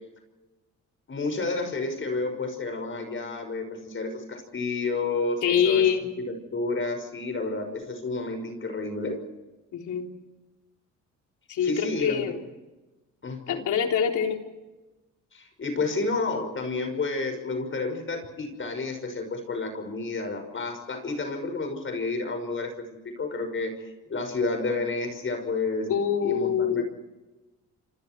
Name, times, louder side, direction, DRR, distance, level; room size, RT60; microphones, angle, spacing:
voice 1, 1.1-5.9 6.2-9.2 11.6-12.4 13.2-13.6 15.3-25.9 26.2-26.8, left 3 dB, 40° left, 6 dB, 5.9 m, -30 dB
voice 2, 5.4-6.0 9.7-10.1 11.5-12.4 13.5-14.4 25.9-26.8, left 8 dB, 75° left, 3 dB, 3.7 m, -24 dB
28.0 x 27.5 x 4.7 m, 1.1 s
cardioid pair, 90°, 30 cm